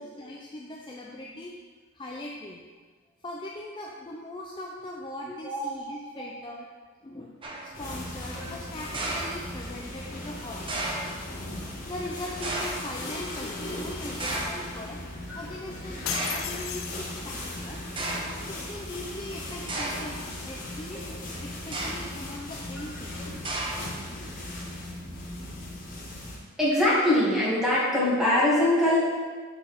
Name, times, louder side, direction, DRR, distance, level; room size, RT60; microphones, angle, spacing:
voice 1, 0.0-1.5 1.9-2.7 3.2-6.7 7.0-7.3 7.6-10.9 11.9-15.0 15.3-17.8 18.5-20.2 20.4-21.0 21.4-23.4, left 1 dB, 25° left, -2 dB, 0.5 m, -40 dB
sound 1, 7.4-7.8 8.9-9.8 10.7-11.2 12.4-13.0 14.2-14.7 15.5-15.6 16.1-16.6 17.4-17.5 18.0-18.4 19.7-20.2 21.6-22.2 23.4-24.1, right 2 dB, 25° right, 0.8 m, -33 dB
sound 2, 7.7-26.4, left 1 dB, 40° left, 1.6 m, -38 dB
sound 3, 16.1-17.5, left 10 dB, 80° left, 0.4 m, -34 dB
voice 2, 26.6-29.0, left 1 dB, ahead, -9 dB, 2.2 m, -23 dB
6.9 x 6.4 x 3.5 m, 1.4 s
head